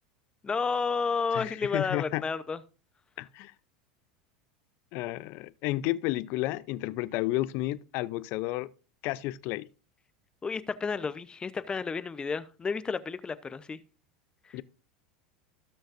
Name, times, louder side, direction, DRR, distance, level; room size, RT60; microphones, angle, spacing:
voice 1, 0.4-2.6 10.4-13.8 14.5-14.6, left 5 dB, 20° left, 0.7 m, -31 dB
voice 2, 1.3-2.2 3.2-3.5 4.9-8.7 9.0-9.7 14.5-14.6, left 17 dB, 55° left, 0.5 m, -32 dB
17.5 x 6.4 x 2.6 m
hypercardioid pair, 90°, 4 cm